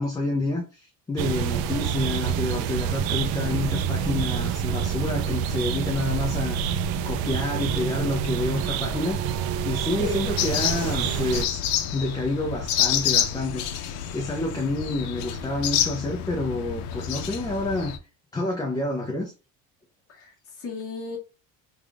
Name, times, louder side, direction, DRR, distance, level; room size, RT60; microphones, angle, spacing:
voice 1, 0.0-6.6 7.0-9.4 9.6-11.6 11.9-18.0 18.3-19.3, left 2 dB, 10° left, 0.5 m, -28 dB
sound 1, 1.2-11.5, right 8 dB, 65° right, 0.5 m, -27 dB
voice 2, 10.0-10.3 20.1-21.2, left 2 dB, 35° left, 1.4 m, -34 dB
sound 2, 10.4-18.0, left 10 dB, 85° left, 0.7 m, -28 dB
3.4 x 2.4 x 3.3 m
cardioid pair, 155°, 39 cm